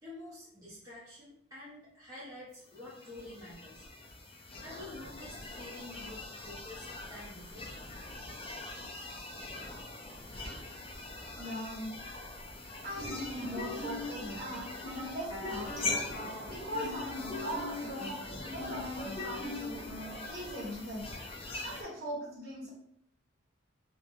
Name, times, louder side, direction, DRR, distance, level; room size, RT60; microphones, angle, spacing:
voice 1, 0.0-3.9 4.6-8.2, left 1 dB, 15° right, -8 dB, 0.6 m, -49 dB
sound 1, 2.7-21.8, left 2 dB, 30° left, 0.3 m, -43 dB
voice 2, 11.4-11.9 12.8-16.0 16.5-19.8 20.3-21.1 21.6-22.7, equal, 50° right, -5 dB, 0.9 m, -40 dB
sound 2, 12.9-20.3, left 2 dB, 60° left, 1.2 m, -42 dB
2.9 x 2.2 x 2.3 m, 0.73 s
head